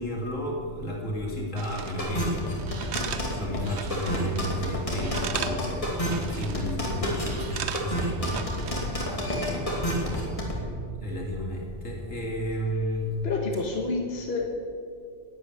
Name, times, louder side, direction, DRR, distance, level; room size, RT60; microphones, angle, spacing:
voice 1, 0.0-10.4 11.0-13.3, equal, 80° left, -1 dB, 3.2 m, -33 dB
sound 1, 1.6-2.1 2.6-4.4 4.7-5.6 5.9-6.8 7.2-9.0 9.3-9.5, right 8 dB, 60° right, 1.0 m, -37 dB
sound 2, 2.0-10.5, equal, 25° left, 2.8 m, -29 dB
voice 2, 10.2-10.9 13.2-14.5, left 3 dB, 55° left, 1 dB, 1.5 m, -30 dB
11.5 x 9.4 x 9.9 m, 2.2 s
omnidirectional pair, 1.3 m